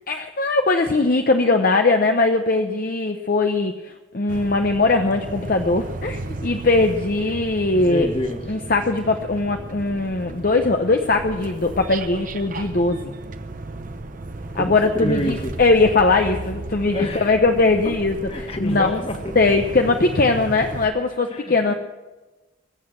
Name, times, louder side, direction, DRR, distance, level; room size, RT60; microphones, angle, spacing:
voice 1, 0.1-8.1 8.5-13.1 14.6-19.0 19.3-21.7, left 3 dB, 45° left, 5 dB, 0.8 m, -20 dB
sound 1, 4.3-20.9, right 2 dB, 45° right, 0.8 m, -34 dB
voice 2, 7.8-8.4 14.5-15.6 16.9-17.3 18.3-19.3 21.3-21.8, left 1 dB, 30° left, 4 dB, 1.7 m, -28 dB
21.5 x 8.0 x 7.4 m, 1.2 s
head